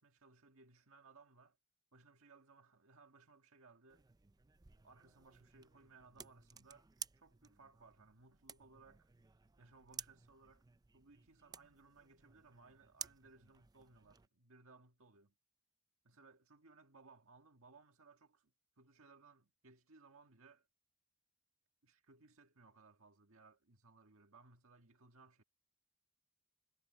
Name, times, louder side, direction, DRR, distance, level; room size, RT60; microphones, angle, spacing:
voice 1, 0.0-1.6 1.9-4.0 4.8-6.9 7.2-9.1 9.6-10.7 10.9-15.3 16.0-20.7 21.8-25.4, right 4 dB, 70° right, 1.8 m, -64 dB
sound 1, 3.9-14.3, right 7 dB, 20° right, 0.5 m, -55 dB
head